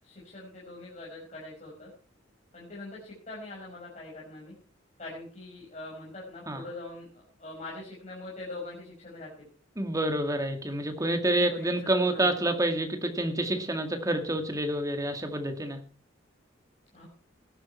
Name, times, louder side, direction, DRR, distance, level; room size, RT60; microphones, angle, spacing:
voice 1, 0.0-1.9 2.5-4.5 5.0-9.5 11.1-12.4 16.9-17.1, left 2 dB, 35° left, -5 dB, 5.4 m, -43 dB
voice 2, 9.8-15.8, right 1 dB, 15° right, 5 dB, 2.1 m, -28 dB
17.5 x 11.5 x 4.5 m, 0.40 s
head